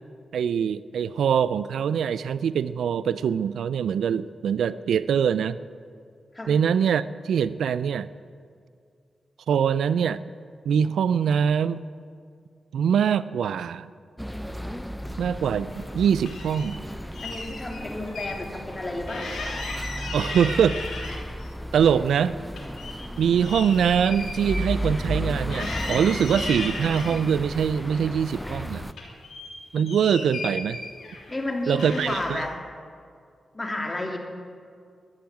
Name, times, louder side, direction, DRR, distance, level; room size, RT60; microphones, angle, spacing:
voice 1, 0.3-5.6 6.5-8.1 9.5-10.2 10.7-11.8 12.7-13.9 15.2-16.8 20.1-20.8 21.7-22.4 23.2-28.9 29.7-30.8 31.7-32.4, right 7 dB, 80° right, 16 dB, 0.4 m, -23 dB
sound 1, 14.2-28.9, equal, ahead, 0.7 m, -34 dB
sound 2, 15.6-16.7 17.1-18.4 18.7-18.8 19.1-21.5 21.8-25.2 25.5-27.2 27.8-28.6 28.9-31.4 31.8-32.4, left 3 dB, 80° left, 3.1 m, -36 dB
voice 2, 17.2-19.3 31.3-32.5 33.5-34.2, left 2 dB, 30° left, 2 dB, 3.1 m, -31 dB
12.5 x 10.5 x 9.3 m, 2.2 s
supercardioid pair, 45°, 0 cm